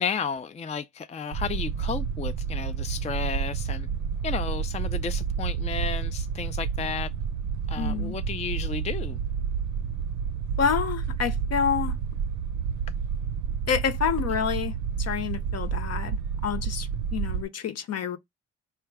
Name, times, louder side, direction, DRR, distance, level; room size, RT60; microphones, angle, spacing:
voice 1, 0.0-3.9 4.2-7.1 7.7-9.2, left 6 dB, 20° left, 0.4 m, -33 dB
sound 1, 1.3-17.4, right 7 dB, 80° right, 0.6 m, -30 dB
voice 2, 7.8-8.2 10.6-12.0 13.7-18.2, left 7 dB, 55° left, 0.9 m, -28 dB
4.5 x 2.3 x 4.6 m
cardioid pair, 90°, 30 cm